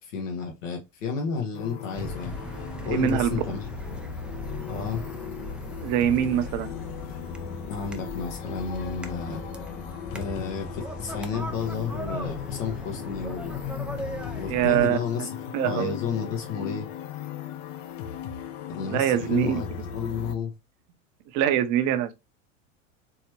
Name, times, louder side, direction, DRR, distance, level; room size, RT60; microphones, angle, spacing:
voice 1, 0.0-2.4 2.8-4.0 4.7-5.0 7.7-9.4 10.1-13.6 14.4-15.3 15.6-16.9 18.7-20.5, left 6 dB, 75° left, 1.5 m, -31 dB
sound 1, 1.5-20.3, left 9 dB, 50° left, 0.9 m, -37 dB
sound 2, 1.9-14.9, right 1 dB, 5° right, 0.5 m, -39 dB
voice 2, 2.9-3.4 5.8-6.7 14.5-15.0 15.5-15.9 18.8-19.6 21.3-22.1, right 11 dB, 50° right, 0.9 m, -24 dB
4.4 x 3.2 x 2.9 m
hypercardioid pair, 90°, 39 cm